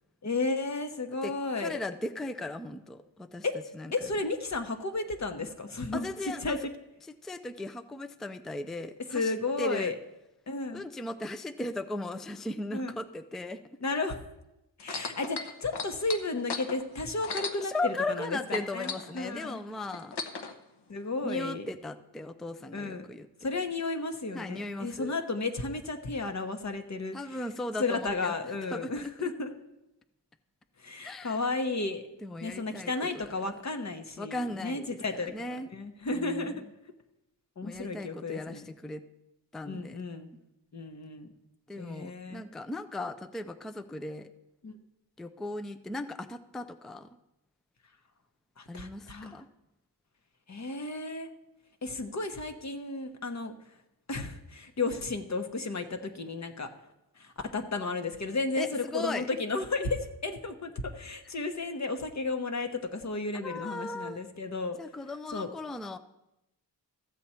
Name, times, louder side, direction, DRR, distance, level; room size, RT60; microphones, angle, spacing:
voice 1, 0.2-1.8 3.4-3.6 3.9-6.7 9.1-10.0 10.5-10.8 12.7-13.0 13.8-14.2 14.8-19.6 20.9-21.7 22.7-23.1 23.4-27.4 27.8-29.5 30.8-32.0 32.4-36.6 37.6-38.7 39.7-40.3 40.7-41.3 41.8-42.5 44.6-44.7 48.6-49.4 50.5-51.3 51.8-53.5 54.1-56.7 57.2-64.8 65.3-65.5, left 3 dB, 40° left, 7 dB, 1.0 m, -33 dB
voice 2, 1.2-3.5 3.7-4.1 5.9-6.6 7.2-9.9 10.7-13.6 17.6-20.2 21.2-23.3 24.3-25.1 27.1-28.3 28.7-28.9 29.2-29.3 31.0-31.4 32.2-32.9 34.2-35.0 35.3-35.7 36.1-36.6 37.6-39.0 39.5-40.0 41.7-44.3 45.2-47.1 48.7-49.5 58.6-59.3 63.3-64.2 64.8-66.0, left 2 dB, ahead, 11 dB, 0.4 m, -37 dB
sound 1, 14.8-18.2 18.5-20.5 21.3-21.4, left 4 dB, 65° left, 1.0 m, -37 dB
14.0 x 7.5 x 4.3 m, 0.91 s
cardioid pair, 90°, 44 cm